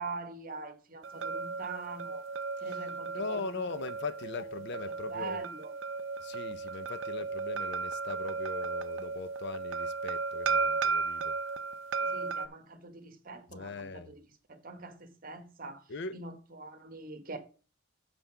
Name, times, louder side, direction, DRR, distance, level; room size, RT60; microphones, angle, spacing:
voice 1, 0.0-2.2 2.6-3.6 4.9-5.7 12.0-14.2 14.5-15.9 16.1-17.4, right 4 dB, 40° right, 1.2 m, -43 dB
sound 1, 1.0-12.5, right 4 dB, 60° right, 0.5 m, -35 dB
voice 2, 3.1-5.4 6.2-11.3 13.5-14.1 15.9-16.2, left 4 dB, 55° left, 0.6 m, -40 dB
6.9 x 5.6 x 5.8 m
head